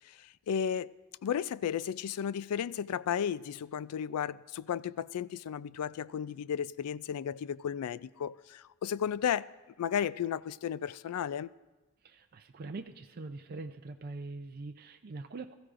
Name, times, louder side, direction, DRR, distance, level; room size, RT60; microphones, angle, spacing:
voice 1, 0.0-0.9 1.2-9.5 9.8-11.5, left 8 dB, 85° left, 0.3 m, -34 dB
voice 2, 12.0-15.6, right 3 dB, 45° right, 0.5 m, -43 dB
21.5 x 14.0 x 2.5 m
head